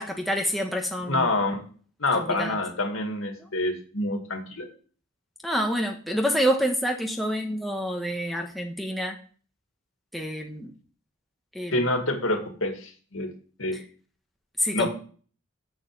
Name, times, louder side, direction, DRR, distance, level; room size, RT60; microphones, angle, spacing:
voice 1, 0.0-1.3 2.1-2.6 5.4-9.2 10.1-10.7 11.5-11.9 14.6-14.9, equal, ahead, 1 dB, 1.0 m, -27 dB
voice 2, 1.0-1.6 2.0-4.7 11.7-13.3 13.6-13.8 14.7-14.9, left 2 dB, 75° left, 4 dB, 2.1 m, -27 dB
7.4 x 6.5 x 6.6 m, 0.42 s
head